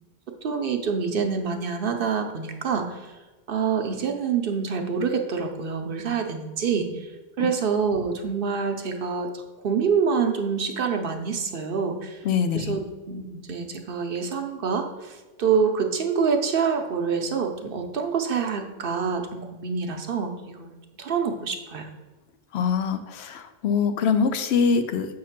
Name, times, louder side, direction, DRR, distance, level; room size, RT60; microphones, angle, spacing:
voice 1, 0.4-3.0 3.5-7.1 7.4-12.2 12.5-21.9, right 6 dB, 60° right, 5 dB, 0.8 m, -26 dB
voice 2, 12.2-12.8 22.5-25.1, left 6 dB, 75° left, 8 dB, 0.8 m, -23 dB
7.3 x 2.8 x 5.8 m, 1.2 s
omnidirectional pair, 1.1 m